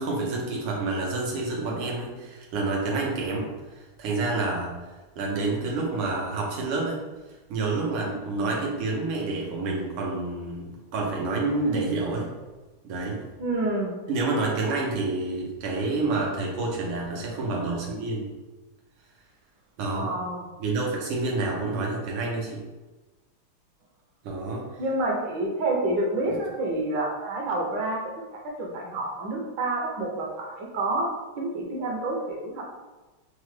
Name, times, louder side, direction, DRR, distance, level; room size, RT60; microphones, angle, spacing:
voice 1, 0.0-4.8 5.2-7.1 7.5-12.3 12.8-13.3 14.1-18.3 19.8-20.2 20.6-22.6 24.2-24.7 26.2-26.4, right 3 dB, 90° right, -2 dB, 1.7 m, -28 dB
voice 2, 13.4-14.0 19.9-20.5 24.8-31.1 31.4-32.6, right 2 dB, 70° right, -1 dB, 1.2 m, -28 dB
5.6 x 2.0 x 3.1 m, 1.2 s
omnidirectional pair, 2.4 m